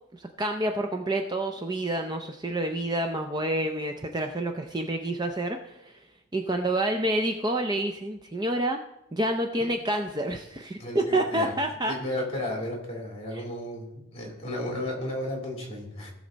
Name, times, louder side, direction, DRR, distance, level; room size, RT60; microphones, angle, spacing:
voice 1, 0.1-6.1 6.3-8.8 9.1-12.0 13.3-13.4, right 1 dB, 20° right, 5 dB, 0.5 m, -28 dB
voice 2, 10.8-11.5 11.9-16.1, left 1 dB, 30° left, -1 dB, 3.3 m, -33 dB
17.5 x 6.4 x 4.0 m, 0.87 s
head